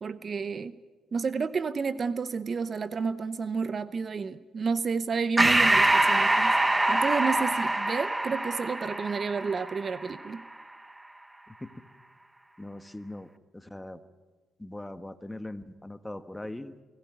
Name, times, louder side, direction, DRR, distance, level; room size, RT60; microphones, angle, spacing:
voice 1, 0.0-0.8 1.1-6.5 6.9-10.4, right 5 dB, 40° right, 15 dB, 0.8 m, -30 dB
Breathing, 5.4-10.3, right 2 dB, 15° right, 1.0 m, -24 dB
voice 2, 12.6-14.0 14.6-16.8, left 1 dB, 10° left, 11 dB, 1.3 m, -41 dB
23.0 x 17.5 x 9.6 m, 1.3 s
cardioid pair, 90°, 0 cm